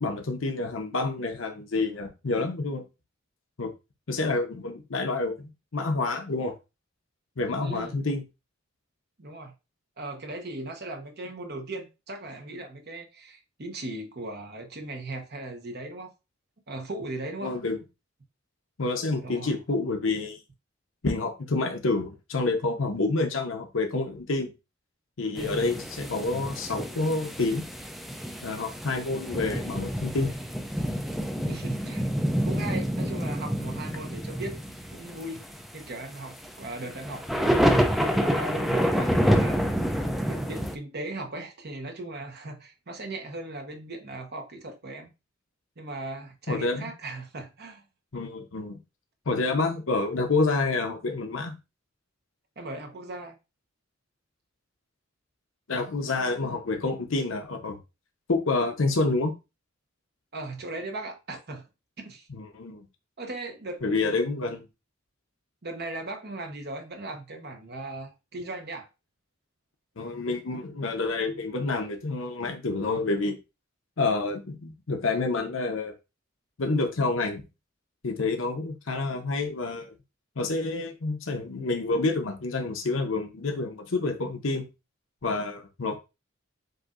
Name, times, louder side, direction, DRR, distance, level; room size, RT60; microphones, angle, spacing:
voice 1, 0.0-2.8 3.6-3.7 4.1-6.5 7.4-8.2 17.4-17.8 18.8-20.4 21.0-24.5 25.2-27.6 28.4-30.3 46.5-46.8 48.1-48.8 49.3-51.5 55.7-57.8 58.3-59.3 62.3-62.9 63.8-64.6 70.0-73.4 74.0-75.9 76.6-77.4 78.0-79.9 80.4-84.6 85.2-86.0, left 3 dB, 75° left, 0.8 m, -28 dB
voice 2, 7.6-7.9 9.2-9.5 10.0-16.1 16.7-17.6 19.2-19.6 25.3-25.8 31.5-32.1 32.4-34.6 34.9-35.4 35.7-39.6 40.3-45.1 45.8-47.8 52.6-53.3 60.3-61.7 62.0-62.3 63.2-64.6 65.6-68.9, right 2 dB, 55° right, 1.0 m, -38 dB
sound 1, 25.4-40.7, equal, ahead, 0.4 m, -28 dB
7.7 x 2.7 x 2.5 m
head